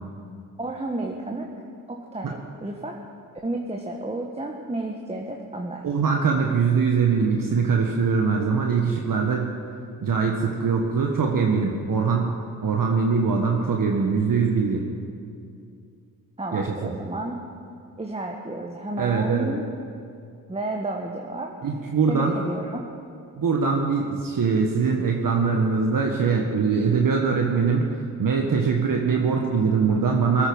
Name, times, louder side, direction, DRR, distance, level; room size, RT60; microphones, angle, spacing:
voice 1, 0.6-1.5 1.9-3.0 3.4-5.9 16.4-17.4 18.0-19.6 20.5-21.5 22.0-22.9, right 2 dB, 15° right, 1 dB, 1.4 m, -31 dB
voice 2, 5.8-9.5 10.0-12.3 12.6-14.8 16.5-16.9 19.0-19.5 21.6-22.3 23.4-30.5, right 5 dB, 50° right, 1 dB, 1.5 m, -22 dB
19.0 x 8.9 x 5.4 m, 2.5 s
supercardioid pair, 50°, 41 cm